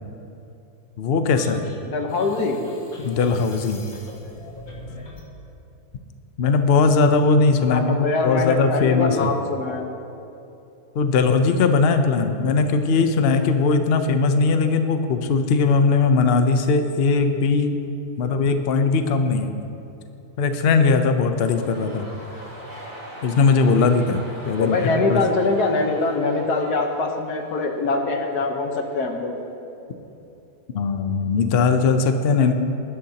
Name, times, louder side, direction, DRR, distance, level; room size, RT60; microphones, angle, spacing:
voice 1, 1.0-1.6 3.0-3.8 6.4-9.3 10.9-17.8 18.2-19.5 20.4-22.1 23.2-24.8 25.1-25.2 30.7-32.5, left 4 dB, 50° left, 7 dB, 0.8 m, -19 dB
sound 1, 1.3-5.3, left 1 dB, 70° left, 2.3 m, -42 dB
voice 2, 1.8-2.6 7.7-9.9 24.6-29.4, left 3 dB, 90° left, 3 dB, 1.7 m, -23 dB
sound 2, 21.1-29.2 29.5-29.6, equal, 45° right, 2.8 m, -42 dB
20.5 x 11.5 x 2.9 m, 2.9 s
omnidirectional pair, 1.6 m